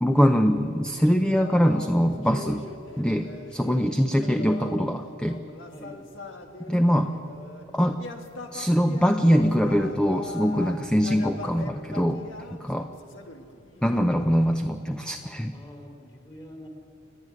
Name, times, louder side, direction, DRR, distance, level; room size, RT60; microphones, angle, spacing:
voice 1, 0.0-2.6 3.0-5.4 6.7-7.2 7.7-8.0 8.5-12.2 12.5-12.9 13.8-15.5, equal, 5° left, 6 dB, 0.6 m, -23 dB
sound 1, 1.2-4.9 5.2-7.6 7.9-14.5, left 2 dB, 75° left, 1.6 m, -41 dB
voice 2, 5.7-6.1 15.5-16.7, left 1 dB, 20° left, 3 dB, 3.1 m, -45 dB
29.5 x 10.5 x 9.5 m, 2.8 s
head